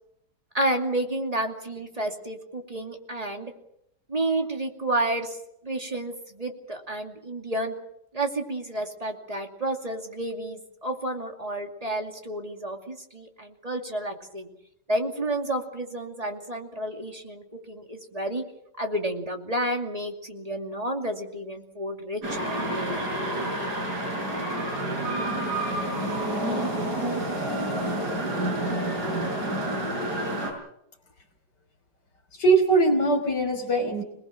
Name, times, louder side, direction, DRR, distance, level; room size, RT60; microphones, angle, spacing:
voice 1, 0.5-3.5 4.1-5.4 5.6-7.8 8.1-14.5 14.9-18.4 18.8-23.0, right 1 dB, 20° right, 3 dB, 2.6 m, -30 dB
sound 1, 22.2-30.5, right 1 dB, 70° right, 6.8 m, -29 dB
voice 2, 32.3-34.0, right 3 dB, 85° left, 2 dB, 3.7 m, -21 dB
27.0 x 20.0 x 6.2 m, 0.79 s
omnidirectional pair, 1.8 m